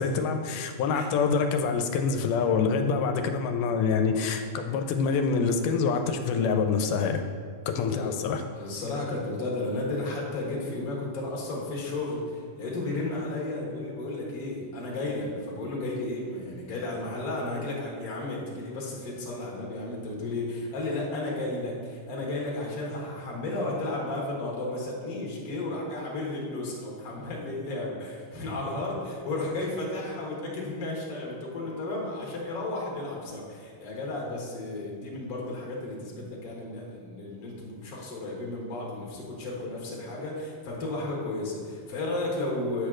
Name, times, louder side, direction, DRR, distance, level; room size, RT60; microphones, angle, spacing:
voice 1, 0.0-7.2 7.7-8.4, left 5 dB, 85° left, 6 dB, 2.1 m, -26 dB
voice 2, 7.8-8.1 8.5-42.9, left 2 dB, 45° left, -3 dB, 1.2 m, -33 dB
8.2 x 3.2 x 6.2 m, 2.1 s
omnidirectional pair, 3.6 m